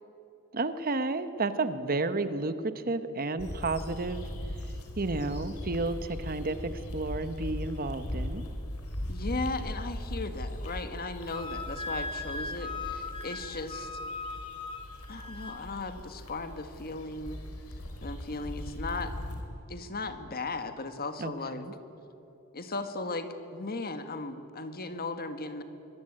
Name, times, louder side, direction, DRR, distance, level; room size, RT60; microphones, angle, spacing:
voice 1, 0.5-4.2 5.0-8.4 21.2-21.7, right 3 dB, 40° right, 11 dB, 1.1 m, -32 dB
sound 1, 3.4-19.4, left 1 dB, 75° left, 4.3 m, -39 dB
voice 2, 9.1-14.0 15.1-17.4 18.0-19.1 19.7-21.6 22.5-25.6, left 3 dB, 45° left, 9 dB, 1.8 m, -37 dB
Wind instrument woodwind instrument, 11.3-15.6, left 3 dB, 25° left, 2.1 m, -38 dB
25.0 x 22.0 x 8.8 m, 3.0 s
head